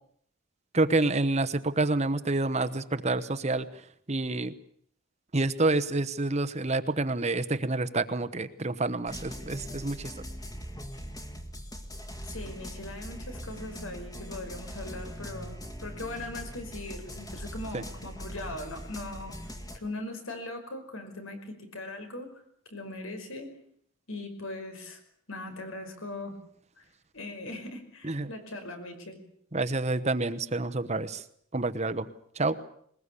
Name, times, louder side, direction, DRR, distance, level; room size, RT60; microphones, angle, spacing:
voice 1, 0.7-3.7 4.1-4.5 5.3-10.1 17.7-17.8 28.0-28.3 29.5-31.2 31.5-32.1 32.4-32.5, right 2 dB, 30° right, 11 dB, 1.0 m, -28 dB
sound 1, 9.1-19.8, equal, 20° left, 2.1 m, -41 dB
voice 2, 12.2-19.4 19.7-22.4 22.7-23.6 24.1-25.0 25.3-26.4 26.8-26.9 27.1-29.2, left 2 dB, 75° left, 6 dB, 5.4 m, -40 dB
21.5 x 21.0 x 8.4 m, 0.64 s
head